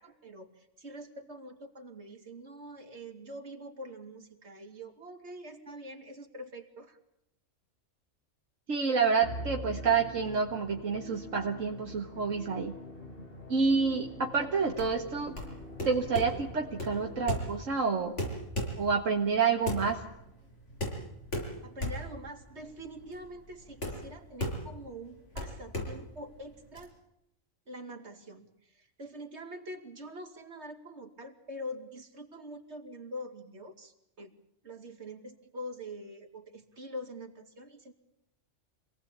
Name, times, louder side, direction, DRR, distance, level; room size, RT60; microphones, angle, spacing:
voice 1, 0.0-7.0 21.6-26.9 27.7-34.3 34.6-37.9, equal, 60° right, 4 dB, 3.1 m, -45 dB
voice 2, 8.7-12.7 13.5-15.4 15.9-18.2 18.8-20.0, right 5 dB, 80° right, 1 dB, 2.1 m, -28 dB
Musical instrument, 9.2-17.7, left 1 dB, 45° left, 3.0 m, -45 dB
sound 1, 14.7-26.8, left 1 dB, 70° left, 7.0 m, -37 dB
27.0 x 18.0 x 8.8 m, 0.82 s
omnidirectional pair, 1.3 m